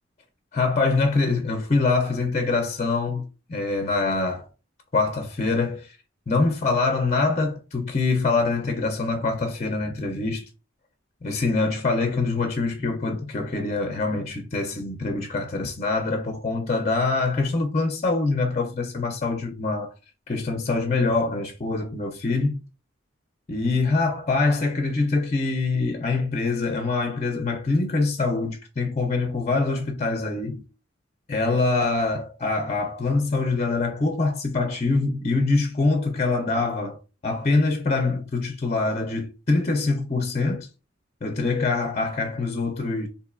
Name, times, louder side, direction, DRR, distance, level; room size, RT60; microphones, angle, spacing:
voice 1, 0.5-4.5 4.9-6.0 6.3-10.5 11.2-19.9 20.3-22.6 23.5-30.6 31.3-40.7 41.2-43.1, left 3 dB, 35° left, 0.6 m, -24 dB
4.0 x 2.6 x 2.4 m
head